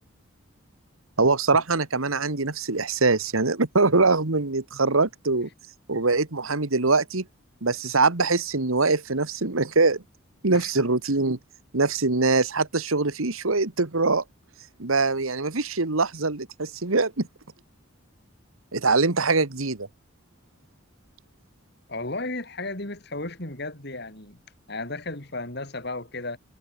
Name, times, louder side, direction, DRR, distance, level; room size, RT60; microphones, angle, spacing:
voice 1, 1.2-5.5 5.9-7.3 7.6-10.0 10.4-11.4 11.7-14.2 14.8-17.3 18.7-19.9, right 3 dB, 80° right, 1.7 m, -23 dB
voice 2, 21.9-24.4 24.7-26.4, left 2 dB, 50° left, 4.1 m, -34 dB
head